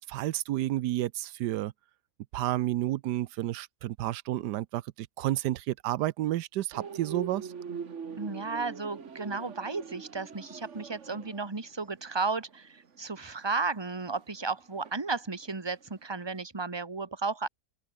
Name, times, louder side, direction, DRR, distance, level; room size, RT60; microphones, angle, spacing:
voice 1, 0.0-1.7 2.3-7.5, right 14 dB, 90° right, 1.3 m, -31 dB
sound 1, 6.7-15.8 16.1-16.4, right 6 dB, 45° right, 1.7 m, -43 dB
voice 2, 8.2-17.5, right 4 dB, 15° right, 1.5 m, -34 dB
open air
omnidirectional pair, 1.7 m